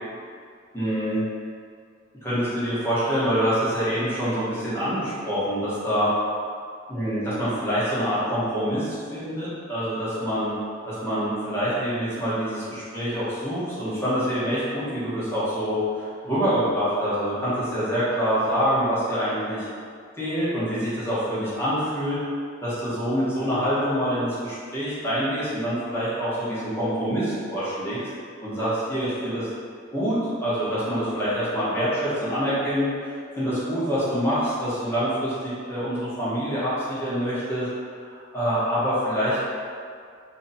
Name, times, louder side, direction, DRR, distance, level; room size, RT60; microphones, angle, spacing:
voice 1, 0.7-1.2 2.2-6.1 6.9-10.6 10.8-19.7 20.2-22.2 22.6-28.0 28.4-29.5 29.9-37.7 38.3-39.4, equal, 15° left, -12 dB, 1.2 m, -26 dB
3.0 x 2.7 x 4.0 m, 2.2 s
head